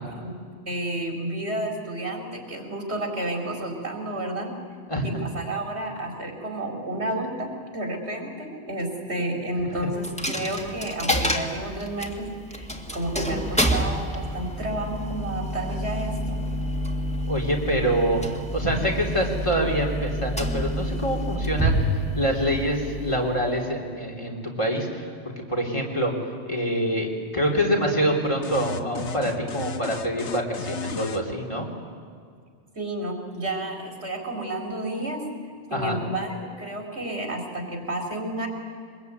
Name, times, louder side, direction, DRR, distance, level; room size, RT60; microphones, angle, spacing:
voice 1, 0.0-4.6 5.0-16.4 32.8-35.2 35.7-38.5, right 1 dB, 75° right, 3 dB, 4.4 m, -31 dB
Coin (dropping), 10.0-23.8, equal, 5° left, 1.9 m, -28 dB
voice 2, 17.3-18.2 18.5-21.8 22.2-25.0 25.4-26.1 26.5-31.7 35.7-36.0, equal, 25° left, 0 dB, 3.7 m, -25 dB
sound 1, 28.4-31.2, left 3 dB, 85° left, 1.4 m, -34 dB
24.0 x 21.0 x 9.5 m, 2.1 s
omnidirectional pair, 1.1 m